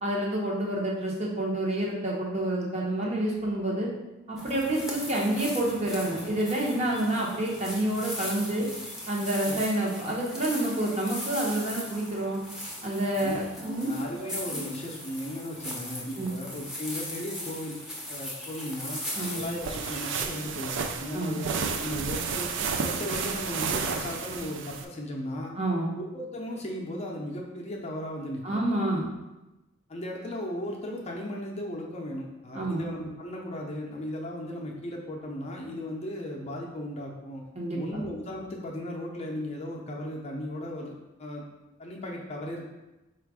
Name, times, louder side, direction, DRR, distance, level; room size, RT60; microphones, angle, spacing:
voice 1, 0.0-3.9 4.3-8.7 9.1-12.4 12.8-13.9 14.2-14.6 16.2-16.3 19.1-19.4 21.1-21.4 25.6-25.9 28.4-29.1 32.5-32.8 37.5-38.0, right 1 dB, 35° right, -3 dB, 0.9 m, -28 dB
sound 1, 4.4-20.3, left 1 dB, ahead, 0.7 m, -39 dB
voice 2, 13.6-17.8 18.1-19.0 19.3-22.5 22.8-25.5 26.0-28.6 29.9-37.4 37.7-40.9 41.2-41.5 41.8-42.7, left 1 dB, 30° left, -1 dB, 0.6 m, -36 dB
sound 2, 19.4-24.9, right 5 dB, 60° right, 0.4 m, -32 dB
4.4 x 2.4 x 4.7 m, 1.0 s
head